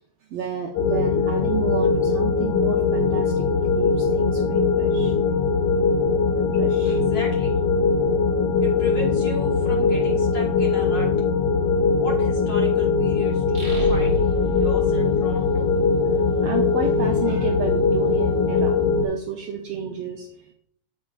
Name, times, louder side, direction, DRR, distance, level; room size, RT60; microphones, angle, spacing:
voice 1, 0.3-5.1 5.9-6.0 6.4-7.0 16.1-20.5, right 6 dB, 80° right, 2 dB, 1.4 m, -32 dB
sound 1, 0.7-19.0, left 4 dB, 75° left, 1.6 m, -21 dB
voice 2, 6.8-7.5 8.6-11.1 11.9-14.3 14.6-15.7, left 2 dB, 50° left, -3 dB, 1.6 m, -35 dB
sound 2, 13.5-16.2, left 2 dB, 25° right, 2.6 m, -30 dB
8.2 x 7.5 x 2.4 m, 0.66 s
omnidirectional pair, 3.4 m